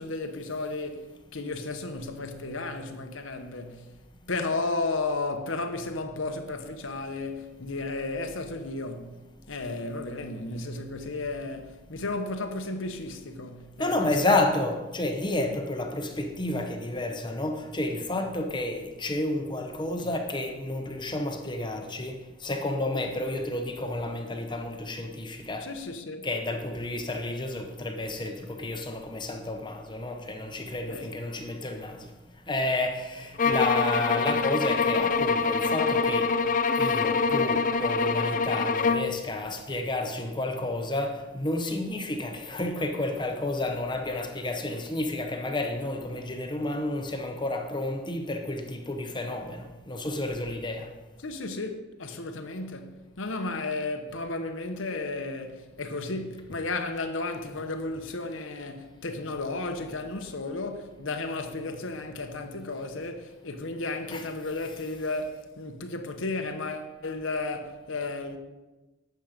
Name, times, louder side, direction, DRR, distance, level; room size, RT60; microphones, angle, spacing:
voice 1, 0.0-3.9 4.3-9.2 9.5-14.4 20.0-20.1 25.6-26.3 30.9-31.1 51.2-68.4, left 3 dB, 75° left, 1.1 m, -33 dB
voice 2, 13.8-25.7 26.2-32.1 32.5-36.3 36.8-50.9 64.1-64.3, left 2 dB, 25° left, 1.0 m, -31 dB
sound 1, 33.4-39.1, left 4 dB, 40° left, 0.5 m, -25 dB
12.0 x 8.1 x 5.2 m
head